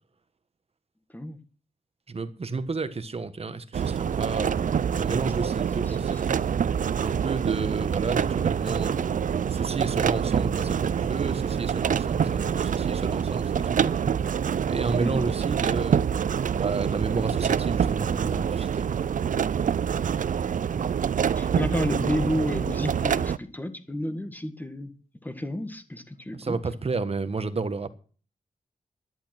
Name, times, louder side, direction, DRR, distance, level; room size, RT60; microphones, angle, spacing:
voice 1, 2.1-6.2 7.0-9.2 9.5-14.0 14.7-16.2 16.5-18.9 26.3-27.9, right 4 dB, 45° right, 1.3 m, -31 dB
sound 1, 3.7-23.4, right 8 dB, 70° right, 0.5 m, -26 dB
voice 2, 5.9-6.4 15.0-15.3 20.3-20.5 21.4-24.9 25.2-26.6, left 1 dB, 15° left, 1.7 m, -31 dB
11.5 x 11.0 x 6.1 m
wide cardioid pair, 100°, 14 cm